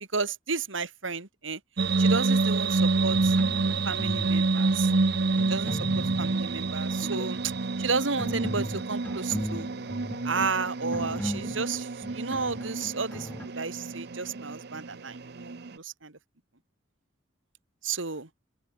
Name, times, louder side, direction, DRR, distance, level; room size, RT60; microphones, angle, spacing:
voice 1, 0.1-1.6 2.0-3.4 3.8-4.9 5.5-7.4 7.8-9.7 10.2-16.2 17.8-18.3, right 4 dB, 75° right, 2.8 m, -32 dB
sound 1, 1.8-15.8, right 3 dB, 55° right, 0.8 m, -28 dB
sound 2, 2.8-4.3 4.6-6.4 6.9-7.3 7.9-13.5, equal, 10° left, 2.1 m, -37 dB
open air
head